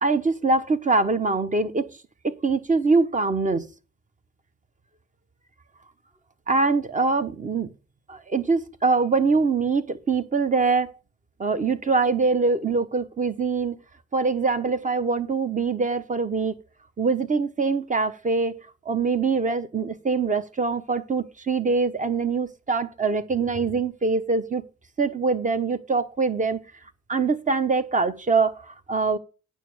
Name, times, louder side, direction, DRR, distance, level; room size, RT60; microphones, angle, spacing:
voice 1, 0.0-2.0 2.2-3.6 6.5-7.7 8.1-10.9 11.4-13.8 14.1-16.5 17.0-24.6 25.0-26.6 27.1-29.2, right 4 dB, 25° right, 1.1 m, -23 dB
9.1 x 6.4 x 6.2 m
cardioid pair, 90°, 30 cm